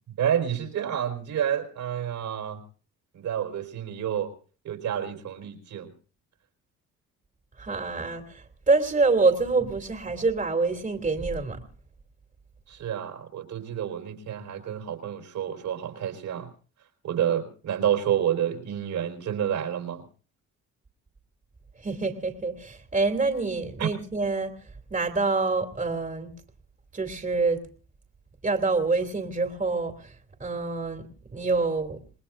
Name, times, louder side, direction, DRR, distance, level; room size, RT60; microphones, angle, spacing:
voice 1, 0.1-2.6 3.1-4.3 4.6-5.9 12.7-16.5 17.0-20.0 23.8-23.9, right 9 dB, 75° right, 4 dB, 4.3 m, -29 dB
voice 2, 7.6-11.6 21.8-24.6 24.9-26.3 26.9-27.6 28.4-30.1 30.4-32.0, right 3 dB, 25° right, 4 dB, 2.7 m, -26 dB
28.5 x 20.0 x 2.6 m, 0.39 s
cardioid pair, 90°, 30 cm